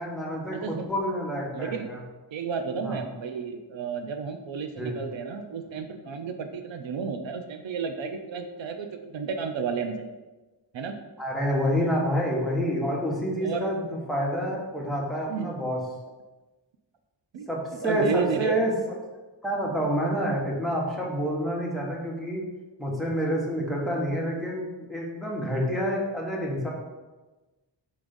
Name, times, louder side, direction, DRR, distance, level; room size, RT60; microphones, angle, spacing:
voice 1, 0.0-2.0 2.8-3.0 4.8-5.0 11.2-15.8 17.5-18.7 19.4-22.4 22.8-26.7, equal, ahead, -3 dB, 1.3 m, -28 dB
voice 2, 0.5-0.9 1.5-1.9 2.3-10.0 10.7-11.0 13.4-13.7 15.3-15.5 17.3-17.5 17.8-18.6, right 6 dB, 90° right, 6 dB, 0.6 m, -32 dB
5.6 x 3.5 x 5.2 m, 1.2 s
wide cardioid pair, 135°, 44 cm